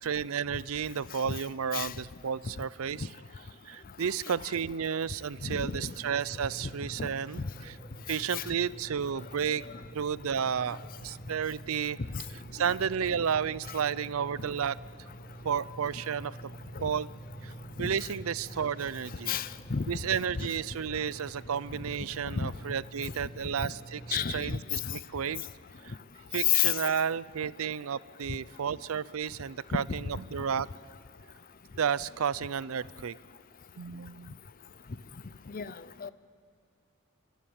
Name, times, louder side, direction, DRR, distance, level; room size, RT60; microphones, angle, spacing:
voice 1, 0.0-3.1 3.7-7.7 8.1-9.6 9.9-12.0 12.5-14.8 15.4-16.4 16.8-17.1 17.4-17.5 17.8-19.3 19.9-25.5 25.8-25.9 26.3-29.8 30.3-30.7 31.8-33.2 33.8-34.3, right 7 dB, 75° right, 19 dB, 0.5 m, -32 dB
voice 2, 5.4-5.9 6.6-6.7 7.0-7.1 7.4-7.5 8.3-8.5 12.6-12.7 13.7-13.8 16.8-16.9 17.8-17.9 19.3-19.8 20.3-20.5 22.3-22.5 24.1-24.6 24.8-24.9 26.4-26.8 29.7-29.8 35.5-35.7 36.0-36.1, left 8 dB, 40° left, 16 dB, 0.6 m, -30 dB
sound 1, 5.8-24.1, right 2 dB, 20° left, 1.5 m, -47 dB
sound 2, 18.0-23.5, equal, 80° left, 7.4 m, -65 dB
29.5 x 13.0 x 8.8 m, 2.4 s
head